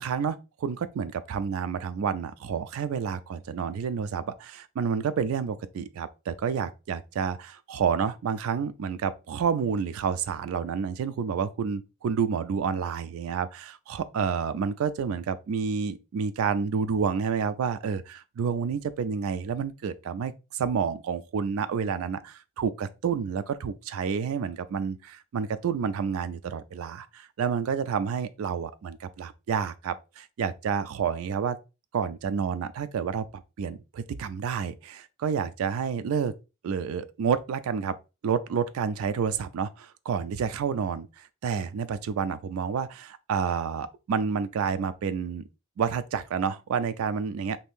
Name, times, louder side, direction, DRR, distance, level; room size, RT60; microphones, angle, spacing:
voice 1, 0.0-31.6 31.9-33.2 33.6-36.3 36.6-38.0 38.2-45.4 45.8-47.6, right 6 dB, 85° right, 0.3 m, -29 dB
2.7 x 2.6 x 3.5 m
head